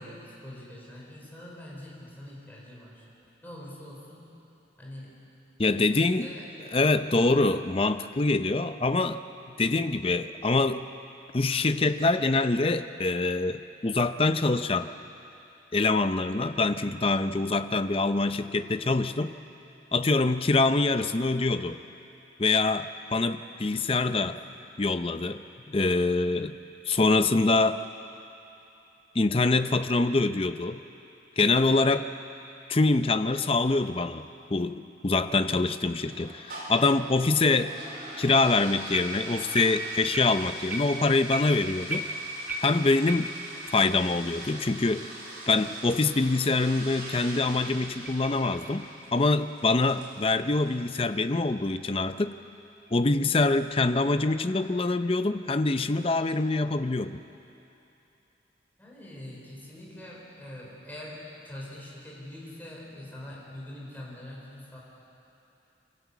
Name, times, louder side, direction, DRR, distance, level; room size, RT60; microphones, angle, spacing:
voice 1, 0.0-3.0 3.4-4.4 4.8-5.2 5.8-6.5 7.0-7.4 24.1-24.5 58.8-64.8, left 1 dB, 10° left, -4 dB, 4.4 m, -44 dB
voice 2, 5.6-6.3 6.7-9.2 9.6-10.9 11.3-14.9 15.7-19.3 19.9-21.8 22.4-24.4 24.8-26.5 26.9-27.8 29.1-30.8 31.4-32.1 32.7-34.2 34.5-37.8 38.2-42.1 42.6-43.3 43.7-45.1 45.5-52.3 52.9-57.2, left 3 dB, 30° left, 11 dB, 0.5 m, -25 dB
sound 1, 36.0-51.3, right 1 dB, 50° right, 4.9 m, -43 dB
sound 2, 38.3-38.6 38.9-43.9 44.2-44.3 44.8-44.9 45.5-45.6 47.3-50.0 52.9-54.4, right 1 dB, 10° right, 1.7 m, -37 dB
25.5 x 14.0 x 8.3 m, 2.9 s
head